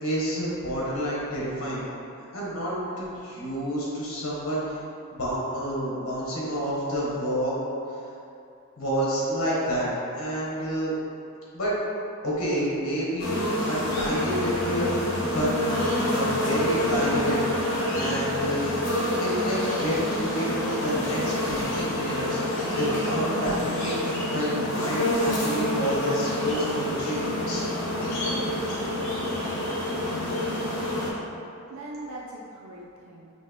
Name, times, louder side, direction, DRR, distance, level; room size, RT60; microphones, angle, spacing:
voice 1, 0.0-1.8 2.3-4.8 5.1-7.5 8.8-10.9 11.5-11.7 12.2-13.4 13.7-14.9 15.3-15.5 16.1-17.4 17.9-18.6 19.2-24.0 24.3-27.6, equal, 80° left, -6 dB, 1.3 m, -29 dB
sound 1, 13.2-31.1, left 1 dB, 60° left, 1.0 m, -27 dB
voice 2, 30.7-31.1 31.7-33.3, right 1 dB, 85° right, -4 dB, 0.5 m, -41 dB
5.6 x 3.0 x 3.0 m, 2.6 s
head